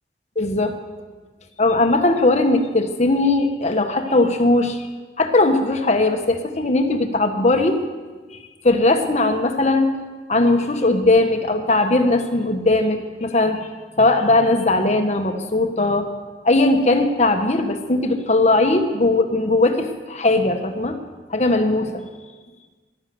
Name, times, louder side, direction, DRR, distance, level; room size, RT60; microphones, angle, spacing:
voice 1, 0.3-0.8 1.6-4.9 5.2-7.8 8.6-9.9 10.3-13.6 14.0-16.1 16.4-21.0 21.3-22.0, left 2 dB, 40° left, 6 dB, 1.5 m, -19 dB
15.0 x 12.5 x 7.8 m, 1.4 s
head